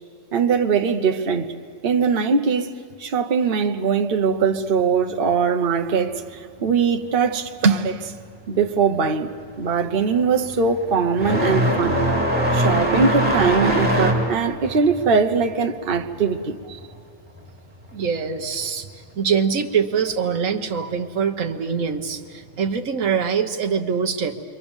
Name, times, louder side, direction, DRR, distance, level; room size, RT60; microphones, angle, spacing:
voice 1, 0.3-1.5 1.8-2.7 3.0-8.2 8.5-9.3 9.6-12.0 12.5-16.8, right 5 dB, 45° right, 1.1 m, -21 dB
sound 1, 8.6-8.9 9.2-17.6 17.8-18.9 19.9-20.0 20.8-20.9 22.6-22.8, right 1 dB, 5° right, 3.3 m, -23 dB
voice 2, 17.9-18.9 19.2-24.4, right 6 dB, 85° right, 1.4 m, -23 dB
29.0 x 23.5 x 7.1 m
omnidirectional pair, 1.3 m